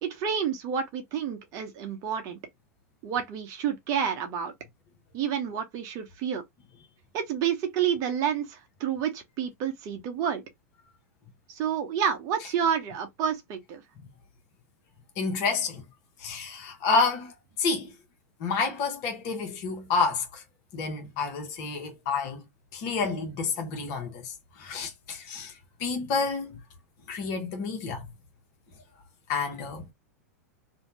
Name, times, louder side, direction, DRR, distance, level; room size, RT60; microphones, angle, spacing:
voice 1, 0.0-2.4 3.0-4.5 5.1-6.4 7.1-10.4 11.5-13.8, right 8 dB, 40° right, 0.9 m, -29 dB
voice 2, 15.2-15.8 16.2-17.9 18.4-20.4 20.7-22.4 22.7-25.5 25.8-26.6 27.1-28.1 29.3-29.9, left 4 dB, 45° left, 1.0 m, -29 dB
2.7 x 2.2 x 2.8 m
figure-of-eight pair, 95°, 9 cm